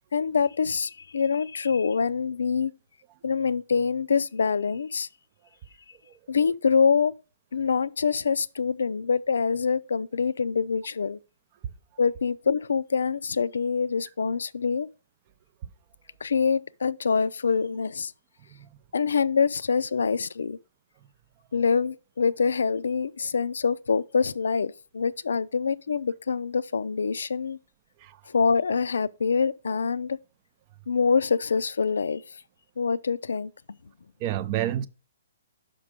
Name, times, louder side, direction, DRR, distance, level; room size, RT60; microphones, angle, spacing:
voice 1, 0.1-2.7 3.2-5.1 6.3-7.1 7.5-11.2 12.0-14.9 16.2-18.1 18.9-20.6 21.5-27.6 28.3-30.2 30.9-32.4 32.8-33.5, left 5 dB, 75° left, 0.3 m, -25 dB
voice 2, 34.2-34.9, right 12 dB, 35° right, 0.5 m, -29 dB
6.0 x 5.0 x 5.0 m
hypercardioid pair, 140°, 0 cm